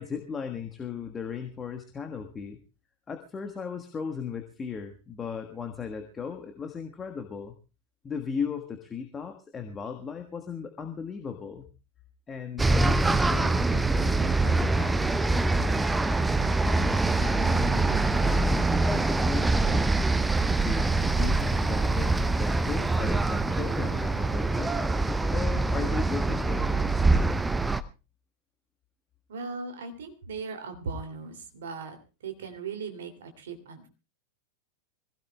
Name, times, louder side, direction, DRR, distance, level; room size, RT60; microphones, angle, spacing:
voice 1, 0.0-2.6 3.1-7.5 8.0-11.6 12.3-15.9 16.4-20.0 20.6-24.7 25.3-27.1, left 6 dB, 20° left, 5 dB, 1.4 m, -37 dB
sound 1, 12.6-27.8, right 3 dB, 10° right, 0.7 m, -24 dB
voice 2, 29.3-32.0 32.2-33.9, right 4 dB, 60° right, 5 dB, 2.7 m, -38 dB
25.5 x 16.5 x 2.3 m, 0.30 s
figure-of-eight pair, 90°, 0 cm